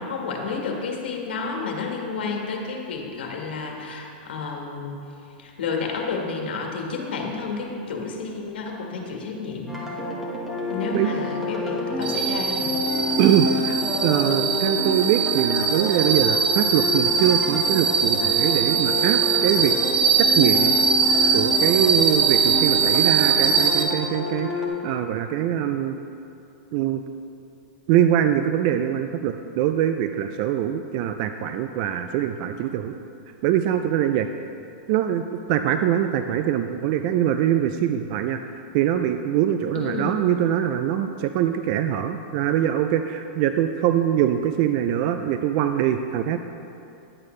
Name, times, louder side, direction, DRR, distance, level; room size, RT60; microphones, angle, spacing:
voice 1, 0.0-5.0 5.4-9.9 10.7-12.7 39.7-40.2, left 4 dB, 75° left, 1 dB, 1.6 m, -31 dB
sound 1, 9.7-24.7, left 2 dB, 5° right, 1.4 m, -28 dB
sound 2, 12.0-23.8, right 6 dB, 65° right, 1.1 m, -22 dB
voice 2, 13.2-19.8 20.2-20.8 21.3-24.5 24.8-26.0 26.7-27.0 27.9-32.9 33.4-34.3 34.9-46.4, right 10 dB, 45° right, 8 dB, 0.3 m, -23 dB
11.0 x 8.3 x 3.2 m, 2.7 s
hypercardioid pair, 145°, 5 cm